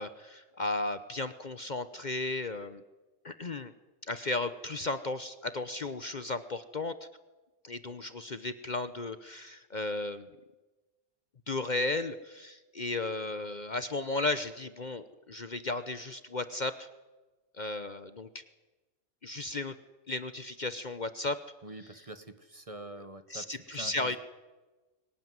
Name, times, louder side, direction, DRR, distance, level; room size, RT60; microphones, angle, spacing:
voice 1, 0.0-2.8 3.2-3.7 4.1-7.0 7.6-10.3 11.5-16.9 17.6-18.4 19.2-19.8 20.1-21.4 23.3-24.2, left 2 dB, 40° left, 12 dB, 1.0 m, -35 dB
voice 2, 21.6-24.2, right 2 dB, 30° right, 11 dB, 1.4 m, -45 dB
23.0 x 18.5 x 9.6 m, 1.2 s
omnidirectional pair, 1.3 m